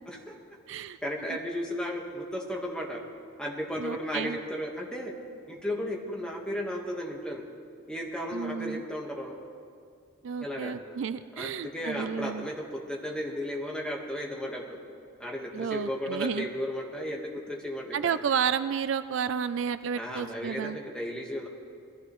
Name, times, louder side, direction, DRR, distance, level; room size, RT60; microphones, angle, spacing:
voice 1, 0.1-3.0 3.4-5.1 5.5-7.4 7.9-9.4 10.4-10.7 11.4-14.8 15.2-18.2 20.0-21.5, equal, 5° left, -1 dB, 1.3 m, -34 dB
voice 2, 0.7-1.0 1.3-1.4 3.8-4.4 8.3-8.8 10.2-12.5 15.5-16.5 17.9-20.8, right 7 dB, 65° right, 13 dB, 0.3 m, -31 dB
21.0 x 14.5 x 3.1 m, 2.3 s
head